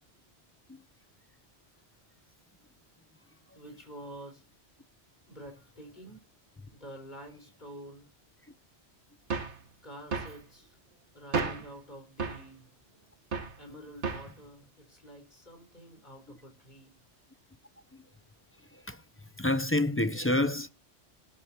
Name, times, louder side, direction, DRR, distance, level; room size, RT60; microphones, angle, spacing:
voice 1, 3.5-4.4 5.3-6.2 6.7-8.1 9.8-10.8 11.1-12.7 13.6-17.0, right 1 dB, 40° left, 4.7 m, -48 dB
sound 1, 9.3-9.6 10.1-10.4 11.3-11.7 12.2-12.5 13.3-13.6 14.0-14.3, right 4 dB, 85° right, 1.9 m, -32 dB
voice 2, 19.4-20.7, left 1 dB, 15° left, 0.6 m, -27 dB
19.5 x 12.0 x 2.9 m
omnidirectional pair, 1.1 m